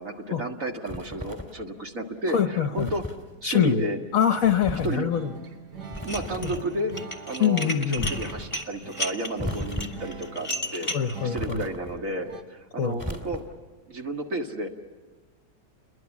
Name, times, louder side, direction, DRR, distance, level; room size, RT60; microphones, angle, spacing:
voice 1, 0.0-3.0 3.4-4.0 4.8-5.1 6.0-6.9 7.2-10.9 11.2-13.4 13.9-14.7, right 1 dB, 50° right, 3 dB, 2.2 m, -32 dB
sound 1, 0.9-1.6 2.8-3.2 4.4-5.0 5.9-6.7 7.9-8.5 9.4-10.1 11.3-12.1 13.0-13.7, left 1 dB, 10° right, 3.0 m, -35 dB
voice 2, 2.3-2.9 3.4-3.9 4.1-5.3 6.4-6.5 7.4-8.1 10.9-11.6 12.8-13.0, left 8 dB, 55° left, 9 dB, 1.2 m, -24 dB
sound 2, 5.1-12.4, right 4 dB, 70° right, 2.1 m, -43 dB
Dishes pots and pans, 6.0-6.6 6.9-11.1, equal, 20° left, 1.6 m, -33 dB
29.5 x 22.5 x 7.2 m, 1.4 s
omnidirectional pair, 1.9 m